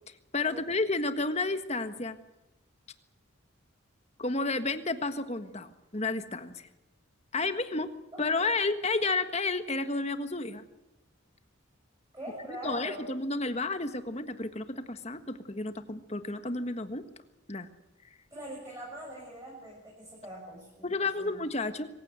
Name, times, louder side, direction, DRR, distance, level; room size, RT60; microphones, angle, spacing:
voice 1, 0.3-2.2 4.2-6.7 7.3-7.9 8.2-10.6 12.5-17.0 17.5-17.7 20.8-21.9, left 3 dB, 30° left, 9 dB, 1.5 m, -31 dB
voice 2, 8.1-8.5 12.1-13.1 18.3-20.9 21.2-21.3, right 1 dB, 15° right, -3 dB, 7.0 m, -43 dB
25.5 x 16.0 x 8.0 m, 0.99 s
head